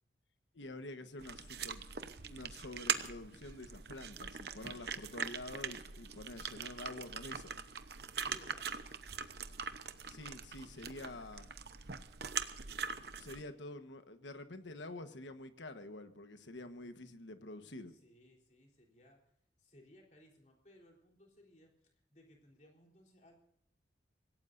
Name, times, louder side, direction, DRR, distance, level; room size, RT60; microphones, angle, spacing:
voice 1, 0.5-1.8 2.3-7.5 10.1-11.5 13.2-17.9, left 2 dB, 85° left, 9 dB, 1.3 m, -48 dB
sound 1, 1.2-13.4, right 6 dB, 60° right, 0.9 m, -42 dB
voice 2, 8.1-8.7 17.9-19.2 19.6-23.4, equal, 40° left, 0 dB, 3.8 m, -62 dB
25.5 x 17.0 x 2.7 m, 0.71 s
head